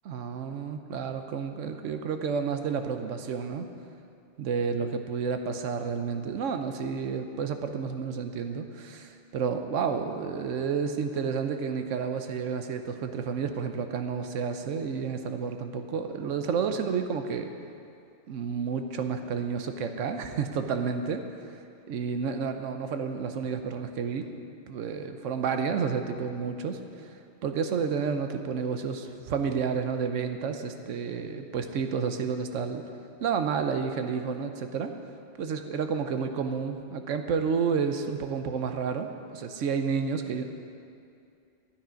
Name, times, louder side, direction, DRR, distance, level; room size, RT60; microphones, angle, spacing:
voice 1, 0.0-3.7 4.4-17.5 18.3-21.2 21.9-24.2 24.7-26.8 27.4-32.8 33.2-34.9 35.4-40.4, right 6 dB, 90° right, 7 dB, 1.1 m, -30 dB
12.5 x 8.7 x 5.1 m, 2.5 s
omnidirectional pair, 1.2 m